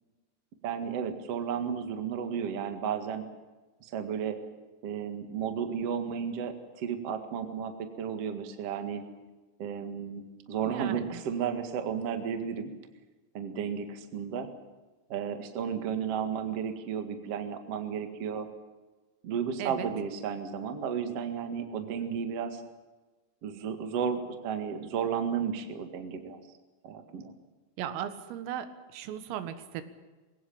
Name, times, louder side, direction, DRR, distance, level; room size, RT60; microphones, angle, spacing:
voice 1, 0.6-3.2 3.8-4.4 4.8-9.0 9.6-10.2 10.5-12.7 13.3-14.5 15.1-18.5 19.2-22.6 23.4-26.4 26.8-27.3, right 7 dB, 55° right, 7 dB, 1.7 m, -33 dB
voice 2, 10.7-11.2 19.6-19.9 27.8-29.8, right 10 dB, 90° right, 11 dB, 4.1 m, -37 dB
22.5 x 17.5 x 8.7 m, 1.2 s
omnidirectional pair, 5.8 m